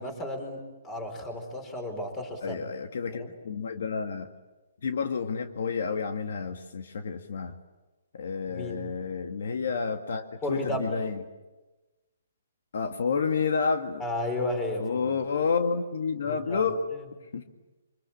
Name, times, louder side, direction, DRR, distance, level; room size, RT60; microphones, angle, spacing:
voice 1, 0.0-2.6 3.2-3.3 8.5-8.8 10.4-11.0 14.0-15.2 16.3-17.0, left 1 dB, 10° left, 5 dB, 4.4 m, -33 dB
voice 2, 2.4-4.3 4.8-7.6 8.1-11.2 12.7-14.0 14.8-16.8 17.3-17.4, left 5 dB, 65° left, 6 dB, 1.9 m, -30 dB
26.5 x 25.0 x 8.7 m, 1.1 s
hypercardioid pair, 170°, 0 cm